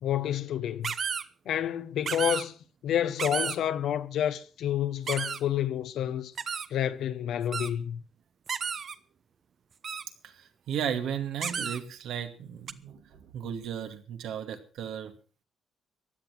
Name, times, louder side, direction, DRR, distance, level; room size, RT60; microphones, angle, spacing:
voice 1, 0.0-0.9 1.4-2.5 2.8-6.3 6.7-8.0, left 10 dB, 75° left, 1.3 m, -29 dB
sound 1, 0.8-1.2 2.1-2.4 3.2-3.6 5.1-5.4 6.4-6.7 7.5-7.7 8.5-9.0 9.8-10.0 11.4-11.8 12.7-12.8, right 6 dB, 50° right, 1.0 m, -32 dB
voice 2, 10.2-15.1, right 8 dB, 80° right, 2.3 m, -35 dB
15.5 x 11.0 x 6.1 m
cardioid pair, 90°, 0 cm